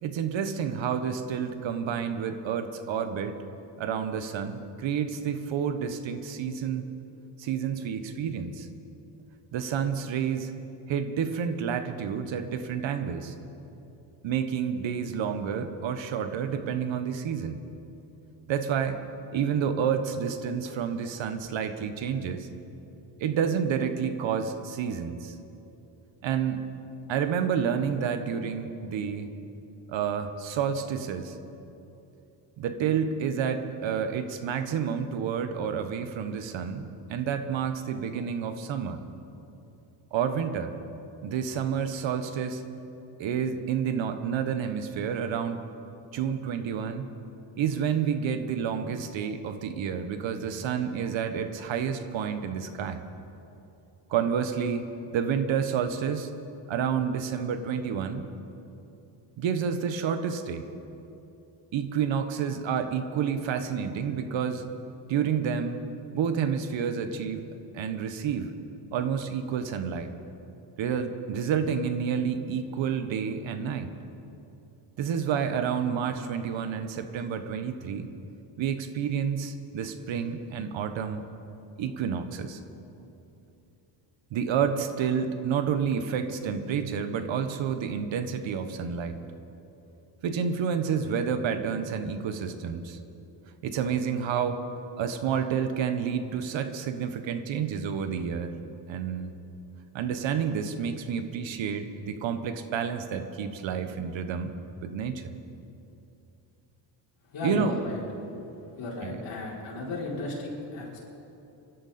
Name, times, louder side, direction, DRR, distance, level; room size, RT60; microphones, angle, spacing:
voice 1, 0.0-3.4 3.8-6.9 7.4-8.7 9.5-10.5 10.9-13.3 14.2-17.7 18.5-19.0 19.3-22.5 23.2-25.4 26.2-26.6 27.1-29.3 29.9-31.4 32.6-39.0 40.1-40.7 41.2-42.6 43.2-45.7 46.1-47.1 47.6-53.0 54.1-54.9 55.1-56.3 56.7-58.3 59.4-60.7 61.7-64.6 65.1-65.8 66.1-67.5 67.7-68.5 68.9-70.1 70.8-73.9 75.0-78.1 78.6-81.3 81.8-82.6 83.0-83.1 84.3-89.2 90.2-93.0 93.6-94.6 95.0-98.5 98.9-99.3 99.9-104.5 104.8-105.3 107.4-107.8 109.0-109.2, right 7 dB, 70° right, 9 dB, 1.2 m, -29 dB
voice 2, 107.3-108.0 108.8-111.0, left 2 dB, 65° left, -4 dB, 4.6 m, -34 dB
23.5 x 12.5 x 4.3 m, 2.9 s
cardioid pair, 120°, 47 cm